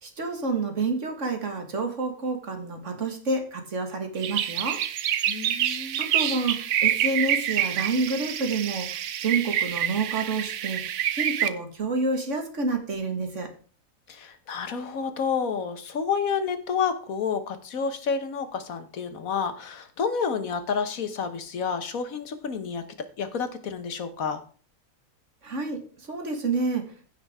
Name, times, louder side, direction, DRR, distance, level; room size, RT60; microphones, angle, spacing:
voice 1, 0.0-4.8 6.0-10.8 11.1-13.5 25.4-26.8, right 3 dB, 60° right, 4 dB, 2.1 m, -29 dB
sound 1, 4.2-11.5, right 10 dB, 75° right, 1.1 m, -27 dB
voice 2, 5.3-6.0 14.1-22.8 23.2-24.4, left 6 dB, 80° left, 9 dB, 1.6 m, -29 dB
15.5 x 5.9 x 3.6 m, 0.43 s
omnidirectional pair, 1.4 m